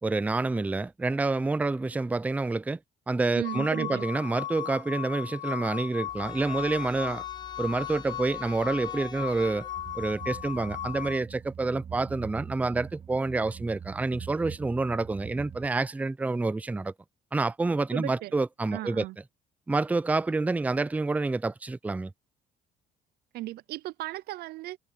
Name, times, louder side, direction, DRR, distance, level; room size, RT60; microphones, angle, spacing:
voice 1, 0.0-2.8 3.1-7.2 7.6-9.7 9.9-16.9 17.3-19.1 19.7-22.1, right 3 dB, 10° right, 0.4 m, -28 dB
sound 1, 3.4-11.2, left 12 dB, 50° left, 1.8 m, -37 dB
voice 2, 3.4-4.0 17.9-18.3 18.7-19.2 23.3-24.8, right 16 dB, 70° right, 0.5 m, -36 dB
sound 2, 6.1-11.1, left 5 dB, 25° left, 1.3 m, -47 dB
sound 3, 9.8-15.7, right 8 dB, 35° right, 1.1 m, -43 dB
cardioid pair, 110°, 17 cm